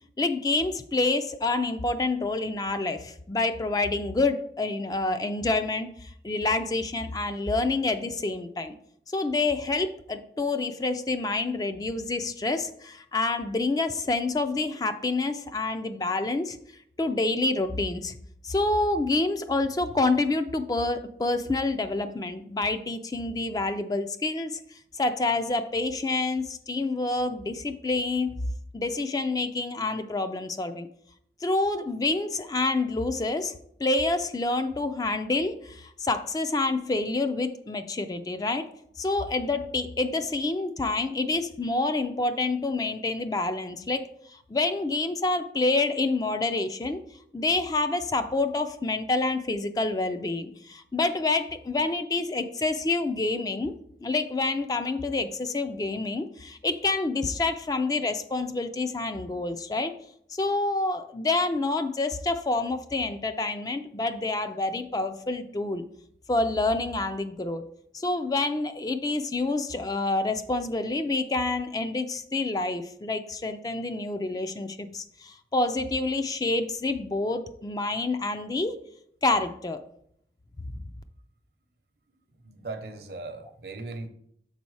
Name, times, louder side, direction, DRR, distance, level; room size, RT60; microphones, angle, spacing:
voice 1, 0.2-8.7 9.1-16.6 17.0-18.2 18.4-24.6 24.9-28.4 28.7-30.9 31.4-33.5 33.8-38.7 39.0-47.0 47.3-53.7 54.0-59.9 60.3-65.8 66.3-67.6 67.9-78.8 79.2-79.8, left 2 dB, 20° left, 9 dB, 0.3 m, -27 dB
voice 2, 82.4-84.1, right 3 dB, 65° right, 7 dB, 0.7 m, -38 dB
6.9 x 4.1 x 4.7 m, 0.70 s
head